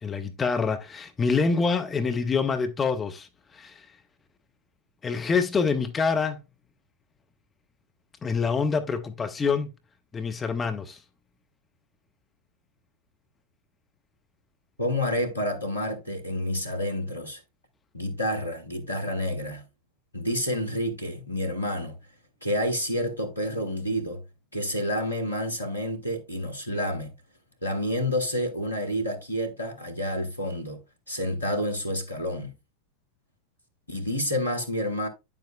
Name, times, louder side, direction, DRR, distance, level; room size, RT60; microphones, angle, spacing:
voice 1, 0.0-3.3 3.5-3.9 5.0-6.4 8.2-9.7 10.1-11.0, left 5 dB, 15° left, 0.8 m, -26 dB
voice 2, 14.8-17.4 17.9-19.6 20.1-21.9 22.4-24.2 24.5-27.1 27.6-30.8 31.1-32.5 33.9-35.1, equal, 85° left, 1.5 m, -29 dB
9.2 x 7.2 x 2.3 m
figure-of-eight pair, 90°, 0 cm